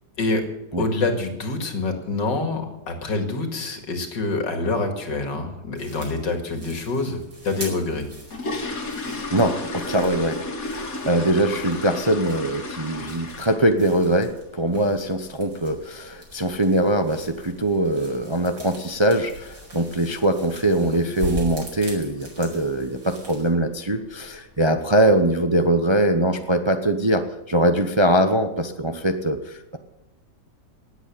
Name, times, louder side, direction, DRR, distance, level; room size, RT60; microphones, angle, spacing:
voice 1, 0.8-8.1 20.8-21.0, left 3 dB, 85° left, 5 dB, 2.8 m, -26 dB
sound 1, 5.8-23.5, right 1 dB, 75° right, 5.8 m, -41 dB
sound 2, 7.9-13.8 14.1-14.4 14.8-14.9 15.2-15.4 15.7-16.0 16.2-16.3 16.9-17.0 17.3-17.4 17.9-18.2 18.5-18.6 19.0-19.2 19.5-19.6 20.1-20.2 20.8-21.1 21.4-21.7 22.1-22.2 22.6-22.7 23.5-23.6 24.0-24.5 25.0-25.1, left 2 dB, 55° left, 2.3 m, -33 dB
voice 2, 9.3-29.8, right 1 dB, 25° right, 7 dB, 0.6 m, -22 dB
18.5 x 8.3 x 8.5 m, 0.98 s
omnidirectional pair, 1.9 m